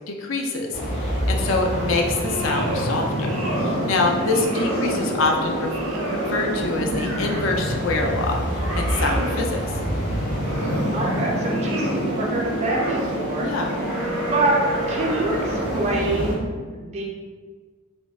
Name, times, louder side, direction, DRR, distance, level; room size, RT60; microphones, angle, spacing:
voice 1, 0.1-5.7 6.0-8.4 8.7-9.6 12.3-12.4 13.4-13.7, left 3 dB, 65° left, 2 dB, 0.4 m, -25 dB
sound 1, 0.7-16.3, equal, 45° left, 1.2 m, -27 dB
sound 2, 2.0-2.9 3.2-3.9 4.2-5.1 5.6-7.6 8.0-9.4 10.1-11.0 11.4-12.1 12.6-13.2 13.7-15.8, right 1 dB, 85° right, 0.6 m, -31 dB
voice 2, 4.7-5.2 10.9-13.5 14.3-17.0, right 2 dB, 30° right, -2 dB, 0.3 m, -26 dB
sound 3, 10.9-11.7 12.6-13.0 13.7-14.1 14.9-15.4, equal, 25° left, 0.8 m, -38 dB
4.3 x 2.0 x 2.3 m, 1.5 s
head